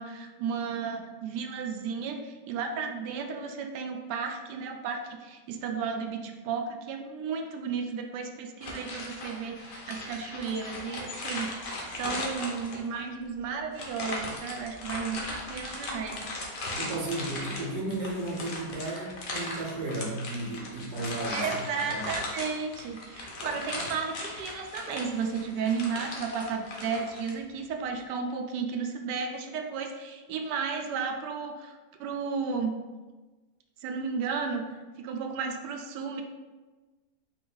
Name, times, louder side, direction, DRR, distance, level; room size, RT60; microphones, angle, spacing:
voice 1, 0.0-11.6 11.9-16.3 21.3-32.7 33.8-34.7 35.0-36.2, right 5 dB, 85° right, 4 dB, 1.2 m, -33 dB
sound 1, 8.6-13.0 13.7-27.3, left 2 dB, 60° left, 1.2 m, -38 dB
voice 2, 16.8-21.5 21.9-22.1, right 2 dB, 65° right, -2 dB, 1.4 m, -34 dB
4.7 x 2.6 x 3.7 m, 1.2 s
omnidirectional pair, 1.8 m